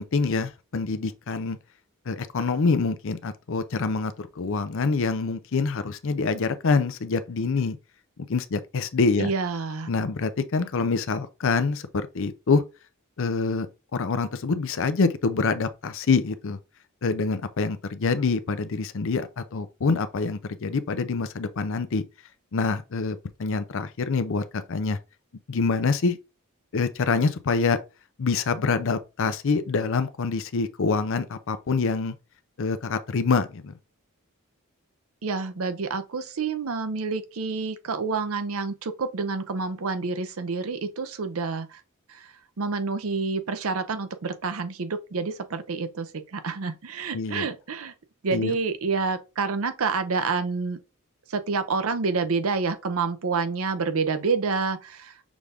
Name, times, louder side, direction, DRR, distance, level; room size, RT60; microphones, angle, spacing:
voice 1, 0.0-1.6 2.1-7.8 8.3-9.3 9.9-12.6 13.2-13.7 13.9-16.6 17.0-22.0 22.5-25.0 25.5-26.2 26.7-27.8 28.2-32.2 32.6-33.7 47.1-47.5 48.3-48.6, left 4 dB, 65° left, 0.5 m, -26 dB
voice 2, 9.2-9.9 35.2-41.8 42.1-47.9 48.2-50.8 51.3-55.2, right 4 dB, 70° right, 0.6 m, -28 dB
6.1 x 2.5 x 3.5 m
head